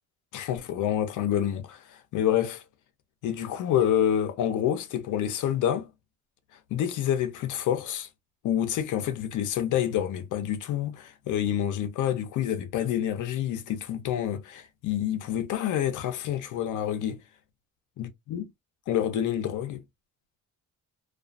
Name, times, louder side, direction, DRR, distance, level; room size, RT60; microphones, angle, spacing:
voice 1, 0.3-2.6 3.2-5.9 6.7-8.1 8.4-17.2 18.0-18.5 18.9-19.8, left 10 dB, 80° left, 0.7 m, -28 dB
2.4 x 2.4 x 2.4 m
cardioid pair, 90°, 30 cm